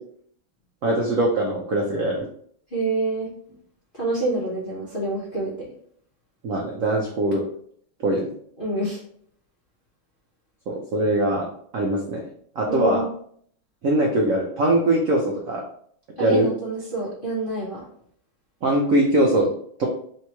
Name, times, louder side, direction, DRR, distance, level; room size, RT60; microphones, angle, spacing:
voice 1, 0.8-2.3 6.4-7.5 8.0-8.3 10.7-11.5 11.7-12.2 12.6-13.0 13.8-15.6 16.2-16.5 18.6-19.5 19.8-19.9, right 1 dB, 75° right, -1 dB, 0.7 m, -21 dB
voice 2, 2.7-3.3 4.0-5.7 8.6-9.0 12.7-13.1 16.2-17.8, right 2 dB, 45° left, -7 dB, 0.7 m, -27 dB
3.4 x 2.9 x 4.5 m, 0.63 s
omnidirectional pair, 2.2 m